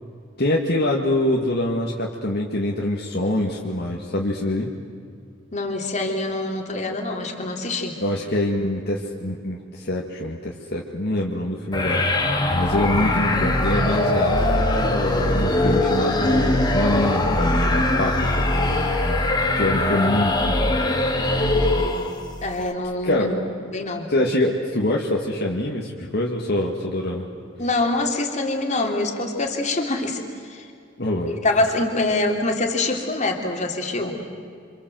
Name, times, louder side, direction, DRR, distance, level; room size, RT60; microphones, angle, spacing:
voice 1, 0.4-4.7 8.0-12.3 12.5-18.4 19.6-20.6 23.0-23.3 24.1-27.3 31.0-31.4, left 1 dB, 55° left, -2 dB, 2.2 m, -25 dB
voice 2, 5.5-8.0 19.7-20.3 22.4-23.3 23.7-24.1 27.6-30.7 31.3-34.1, left 2 dB, 35° left, 2 dB, 3.3 m, -25 dB
sound 1, 11.7-22.3, left 1 dB, 20° left, 2.5 m, -21 dB
28.0 x 26.5 x 7.9 m, 2.3 s
head